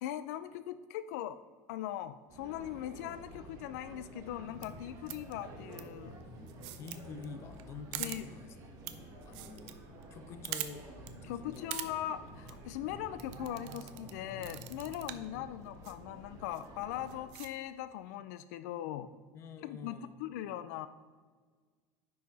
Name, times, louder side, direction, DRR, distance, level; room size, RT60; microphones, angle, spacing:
voice 1, 0.0-1.4 1.7-6.2 8.0-8.3 11.2-19.1 19.6-20.9, left 12 dB, 80° left, 13 dB, 0.4 m, -40 dB
sound 1, 2.3-17.2, right 1 dB, 45° right, 1.5 m, -50 dB
sound 2, 4.5-4.7 5.1-5.3 5.7-5.8 6.5-7.0 7.2-7.3 7.6-7.7 7.9-8.2 8.8-8.9 9.2-9.7 10.0-10.1 10.4-10.7 11.1-11.2 11.5-11.9 12.3-12.5 13.2-14.1 14.4-15.3 15.8-15.9 16.5-16.7 17.1-17.5, right 14 dB, 60° right, 0.6 m, -41 dB
voice 2, 6.8-9.7 10.1-11.8 15.3-15.6 19.3-20.1, left 5 dB, 30° left, 9 dB, 0.6 m, -48 dB
10.0 x 4.8 x 4.0 m, 1.5 s
cardioid pair, 160°, 9 cm